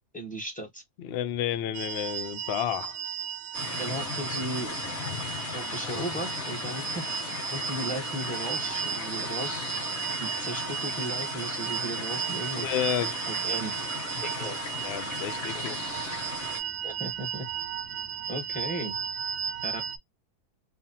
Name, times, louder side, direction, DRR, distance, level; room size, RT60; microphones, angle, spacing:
voice 1, 0.1-0.8 3.8-4.8 5.5-9.6 10.2-12.7 13.3-13.7 14.2-14.6 15.5-15.6 16.8-17.5 18.3-19.0 19.6-19.8, right 1 dB, 5° left, 0.9 m, -36 dB
voice 2, 1.0-3.0 12.6-13.1 14.4-14.5 14.8-15.7, left 11 dB, 85° left, 0.5 m, -31 dB
sound 1, 1.7-20.0, right 8 dB, 75° right, 1.0 m, -35 dB
sound 2, 3.5-16.6, left 3 dB, 40° left, 1.8 m, -36 dB
5.3 x 2.1 x 2.7 m
omnidirectional pair, 1.7 m